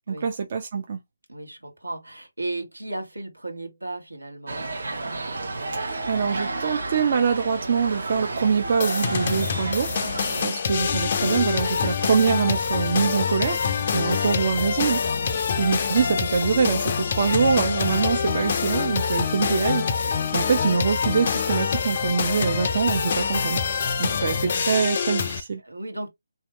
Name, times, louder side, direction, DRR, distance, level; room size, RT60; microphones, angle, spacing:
voice 1, 0.1-1.0 6.1-10.0 10.4-19.9 20.3-23.6 24.0-25.6, right 6 dB, 35° right, 0.5 m, -24 dB
voice 2, 1.3-4.7 10.2-10.5 13.8-14.1 15.1-15.4 20.1-20.4 23.9-24.0 25.6-26.1, right 2 dB, 75° right, 1.4 m, -36 dB
sound 1, 4.5-10.4, right 2 dB, 55° right, 0.9 m, -31 dB
sound 2, 8.8-25.4, left 6 dB, 35° left, 0.4 m, -25 dB
3.4 x 2.8 x 3.0 m
figure-of-eight pair, 150°, 0 cm